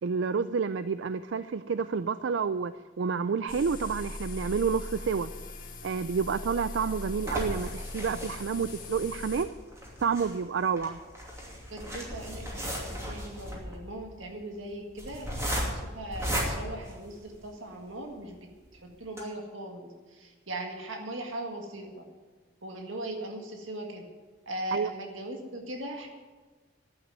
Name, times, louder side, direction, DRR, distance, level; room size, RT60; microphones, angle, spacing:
voice 1, 0.0-5.3 5.8-9.5 10.0-11.0 24.7-24.9, right 5 dB, 70° right, 13 dB, 0.4 m, -29 dB
sound 1, 3.5-9.5, left 2 dB, 45° left, 1.6 m, -40 dB
sound 2, 6.3-17.6 18.2-18.3 18.6-18.7 19.0-19.2, equal, 15° right, 2.7 m, -36 dB
voice 2, 11.7-18.3 18.7-22.0 22.6-24.0 24.4-26.1, right 1 dB, 85° right, 2 dB, 1.8 m, -39 dB
11.5 x 8.9 x 9.3 m, 1.3 s
head